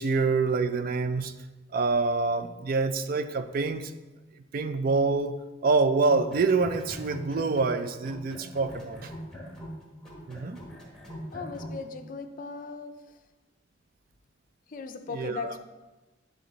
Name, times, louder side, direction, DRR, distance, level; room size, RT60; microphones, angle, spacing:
voice 1, 0.0-1.3 1.7-3.9 4.5-5.3 5.6-9.1 10.3-10.6 15.1-15.6, right 4 dB, 50° right, 0.4 m, -26 dB
sound 1, 6.0-7.8 8.0-11.8, equal, 5° left, 1.3 m, -41 dB
voice 2, 11.3-13.1 14.7-15.6, left 4 dB, 45° left, 0.5 m, -38 dB
10.0 x 3.8 x 4.0 m
head